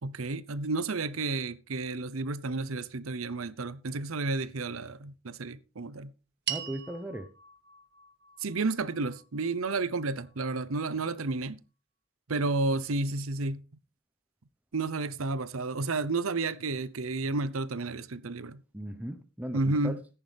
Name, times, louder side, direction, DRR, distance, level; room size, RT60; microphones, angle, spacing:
voice 1, 0.0-6.1 8.4-11.6 12.3-13.6 14.7-18.6 19.5-20.0, right 3 dB, 75° right, 0.8 m, -31 dB
voice 2, 6.5-7.3 18.7-20.0, right 1 dB, 5° right, 0.9 m, -37 dB
sound 1, 6.5-10.9, right 10 dB, 55° right, 1.5 m, -42 dB
14.0 x 10.5 x 3.5 m
head